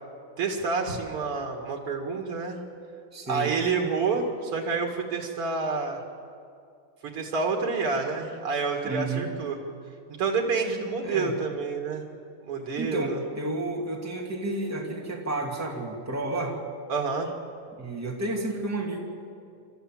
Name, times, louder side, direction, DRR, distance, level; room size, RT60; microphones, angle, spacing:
voice 1, 0.4-2.6 3.2-6.0 7.0-9.6 10.2-12.1 12.4-13.2 16.9-17.3, right 4 dB, 85° right, 2 dB, 2.9 m, -28 dB
voice 2, 3.1-3.5 8.8-9.3 11.0-11.3 12.8-16.6 17.8-19.0, right 2 dB, 5° right, -1 dB, 2.3 m, -31 dB
29.5 x 13.5 x 7.6 m, 2.3 s
omnidirectional pair, 2.4 m